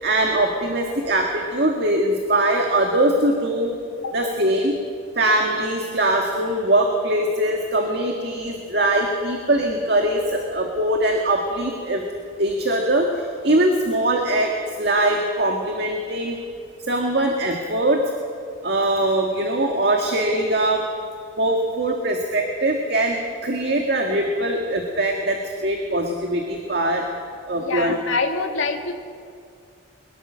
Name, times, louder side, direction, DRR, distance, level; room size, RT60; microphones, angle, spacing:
voice 1, 0.0-3.7 4.1-4.8 5.2-12.0 12.4-13.1 13.4-14.5 14.8-16.4 16.9-18.0 18.6-20.8 21.4-23.2 23.4-27.0 27.5-28.0, right 1 dB, 50° right, 2 dB, 1.9 m, -21 dB
voice 2, 27.5-29.0, left 3 dB, 75° left, 3 dB, 1.9 m, -25 dB
22.5 x 21.5 x 6.5 m, 2.3 s
head